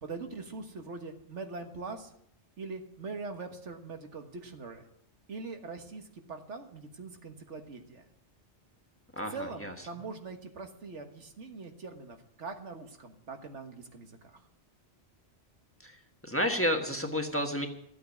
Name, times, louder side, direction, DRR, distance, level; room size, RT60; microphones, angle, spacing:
voice 1, 0.0-2.1 2.6-4.9 5.3-8.1 9.3-14.4, right 4 dB, 85° right, 5 dB, 1.7 m, -42 dB
voice 2, 16.2-17.7, equal, 10° left, 3 dB, 1.4 m, -30 dB
13.5 x 8.5 x 8.3 m, 0.73 s
omnidirectional pair, 1.2 m